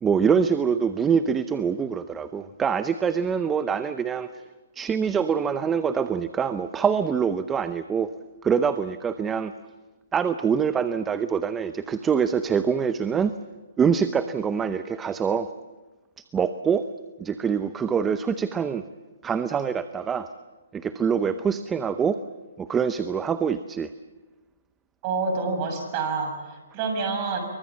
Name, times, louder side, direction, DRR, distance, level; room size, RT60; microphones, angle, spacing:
voice 1, 0.0-4.4 4.8-8.1 8.4-9.5 10.1-13.3 13.8-15.5 16.3-16.9 17.2-18.8 19.2-20.3 20.7-22.2 22.6-23.9, right 6 dB, 10° right, 11 dB, 0.7 m, -24 dB
voice 2, 25.0-27.4, right 4 dB, 30° right, 4 dB, 7.1 m, -28 dB
25.5 x 23.5 x 7.4 m, 1.2 s
hypercardioid pair, 155°, 0 cm